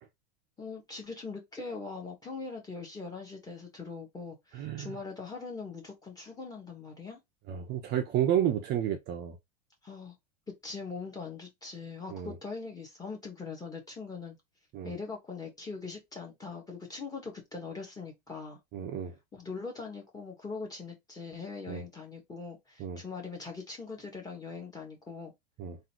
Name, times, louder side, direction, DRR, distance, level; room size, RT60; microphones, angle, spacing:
voice 1, 0.6-7.2 9.8-10.1 10.6-14.4 14.8-18.6 19.3-25.3, left 4 dB, 10° left, 1.5 m, -41 dB
voice 2, 4.5-4.9 7.5-9.4 12.1-12.3 14.7-14.9 18.7-19.2 21.7-21.8 22.8-23.0 25.6-25.8, right 10 dB, 35° right, 0.7 m, -31 dB
3.8 x 2.8 x 4.3 m
supercardioid pair, 145°, 32 cm